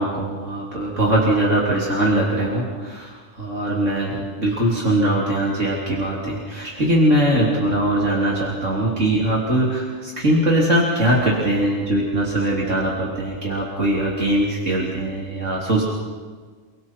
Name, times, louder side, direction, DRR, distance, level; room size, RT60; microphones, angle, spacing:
voice 1, 0.0-15.8, right 1 dB, 65° right, -4 dB, 3.7 m, -21 dB
29.5 x 23.0 x 4.6 m, 1.5 s
omnidirectional pair, 1.4 m